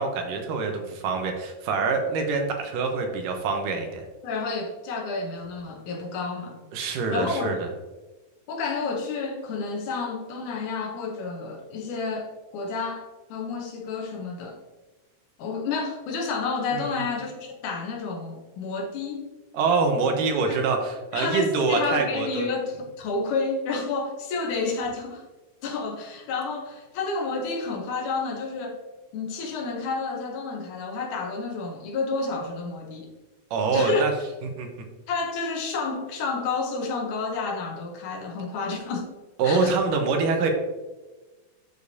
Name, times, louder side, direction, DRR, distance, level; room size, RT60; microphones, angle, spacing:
voice 1, 0.0-4.0 6.7-7.7 16.7-17.0 19.5-22.5 33.5-34.1 34.4-34.7 39.4-40.5, right 4 dB, 80° right, 3 dB, 2.5 m, -25 dB
voice 2, 4.2-6.6 7.1-7.6 8.5-14.6 15.4-19.3 20.5-20.6 21.1-25.2 25.6-28.8 29.1-33.1 33.7-34.0 35.1-39.1 39.4-39.7, left 4 dB, 70° left, 2 dB, 2.3 m, -30 dB
11.5 x 4.9 x 2.7 m, 1.2 s
omnidirectional pair, 3.9 m